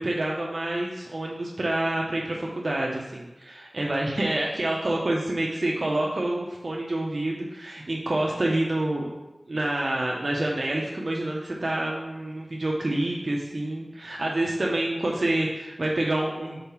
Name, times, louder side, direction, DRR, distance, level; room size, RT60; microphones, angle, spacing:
voice 1, 0.0-9.1 9.5-16.6, right 1 dB, 65° right, -2 dB, 0.8 m, -27 dB
5.3 x 4.7 x 5.8 m, 1.0 s
wide cardioid pair, 55°, 0 cm